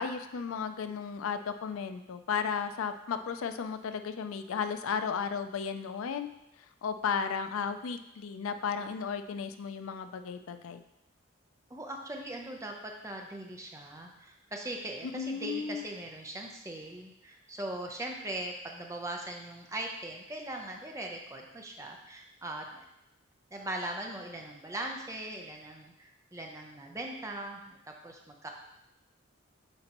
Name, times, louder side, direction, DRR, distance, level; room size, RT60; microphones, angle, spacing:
voice 1, 0.0-6.3 6.8-10.8 15.0-15.8, left 6 dB, 80° left, 9 dB, 0.4 m, -34 dB
voice 2, 11.7-22.8 23.5-28.5, right 1 dB, 15° right, 1 dB, 0.6 m, -40 dB
7.8 x 4.4 x 2.9 m, 0.88 s
head